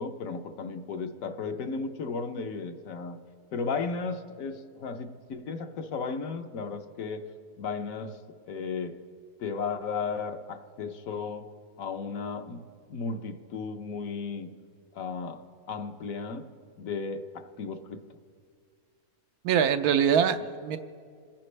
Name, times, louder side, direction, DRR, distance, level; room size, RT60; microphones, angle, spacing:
voice 1, 0.0-3.2 3.5-7.3 7.6-8.2 8.5-8.9 9.4-11.4 11.8-12.6 12.9-14.5 14.9-15.4 15.7-16.5 16.8-18.0, left 4 dB, 70° left, 7 dB, 1.2 m, -34 dB
voice 2, 19.4-20.8, right 8 dB, 90° right, 9 dB, 1.2 m, -23 dB
27.5 x 10.5 x 3.3 m, 2.1 s
omnidirectional pair, 1.5 m